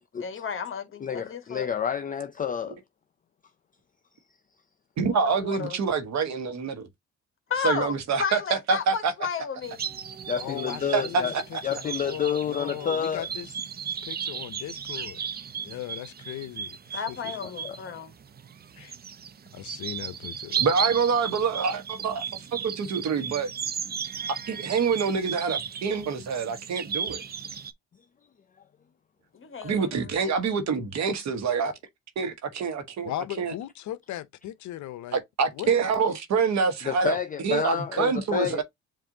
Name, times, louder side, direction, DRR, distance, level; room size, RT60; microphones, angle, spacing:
voice 1, 0.2-1.7 5.1-5.8 7.5-9.8 16.9-18.1 29.3-30.3, left 6 dB, 45° left, 1.3 m, -33 dB
voice 2, 1.0-2.8 10.3-11.3 11.6-13.3 17.6-17.8 36.9-38.6, left 7 dB, 30° left, 0.4 m, -29 dB
voice 3, 5.0-6.9 7.6-9.1 10.9-11.2 20.6-22.2 22.6-23.5 24.5-27.2 29.6-31.7 32.2-33.1 33.4-33.5 35.1-37.2 37.4-38.6, right 5 dB, 65° right, 1.2 m, -26 dB
sound 1, 9.6-27.7, right 7 dB, 35° right, 0.5 m, -35 dB
voice 4, 10.4-13.5 14.0-15.2 15.6-17.2 18.8-19.0 19.5-20.3 33.0-35.2 35.5-35.7, left 13 dB, 70° left, 0.6 m, -38 dB
7.5 x 2.6 x 2.7 m
cardioid pair, 90°, 30 cm